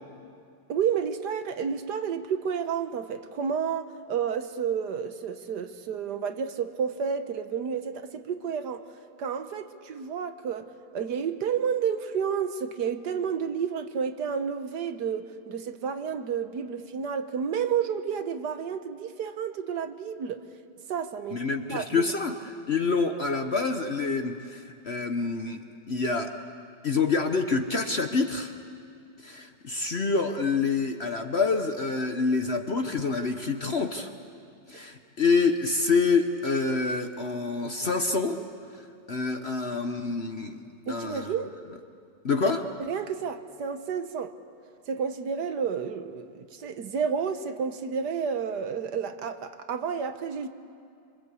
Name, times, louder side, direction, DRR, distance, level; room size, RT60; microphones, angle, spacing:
voice 1, 0.7-8.8 9.2-20.4 20.9-21.4 21.7-22.0 40.9-41.5 42.8-44.3 44.9-50.5, right 7 dB, 65° right, 1.5 m, -30 dB
voice 2, 21.3-22.4 22.7-25.6 25.9-26.3 26.8-28.5 29.2-34.1 34.7-38.4 39.1-40.6 40.9-41.3 42.2-42.7, left 4 dB, 45° left, 1.0 m, -27 dB
26.5 x 25.5 x 8.3 m
omnidirectional pair, 2.0 m